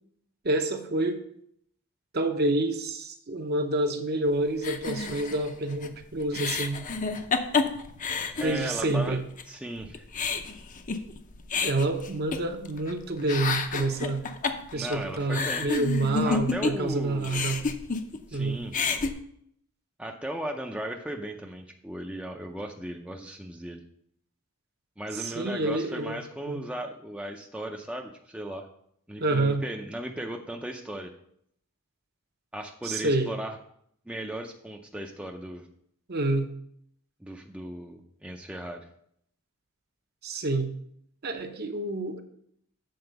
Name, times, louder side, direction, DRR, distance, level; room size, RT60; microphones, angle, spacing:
voice 1, 0.4-1.2 2.1-6.8 8.4-9.2 11.6-14.2 14.7-17.6 18.3-18.6 25.1-26.2 26.5-26.6 29.2-29.6 32.8-33.3 36.1-36.5 40.2-40.7 41.2-42.2, right 2 dB, 45° right, 5 dB, 0.8 m, -28 dB
sound 1, 4.6-9.0 9.4-9.5 9.8-12.9 13.2-16.9 17.2-18.4 18.6-19.1, left 4 dB, 35° left, 0.6 m, -30 dB
voice 2, 8.4-9.2 9.5-10.0 14.7-15.7 16.2-17.5 18.3-18.7 20.0-23.8 25.0-28.7 29.1-31.1 32.5-33.6 34.1-35.7 37.2-38.9, right 1 dB, 5° right, 2 dB, 0.5 m, -36 dB
7.9 x 4.3 x 6.7 m, 0.70 s
head